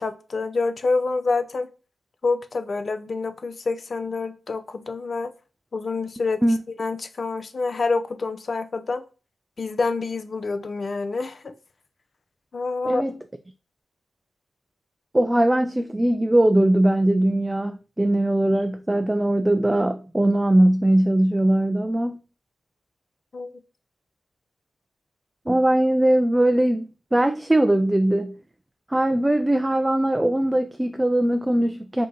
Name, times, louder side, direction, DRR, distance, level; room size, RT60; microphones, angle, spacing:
voice 1, 0.0-1.7 2.2-5.3 5.7-6.4 6.7-9.0 9.6-11.5 12.5-13.0 23.3-23.5, left 3 dB, 55° left, 0.5 m, -27 dB
voice 2, 15.1-22.2 25.5-28.3 28.9-32.1, right 1 dB, 15° right, 0.3 m, -20 dB
3.7 x 2.8 x 3.8 m
cardioid pair, 60°, 0 cm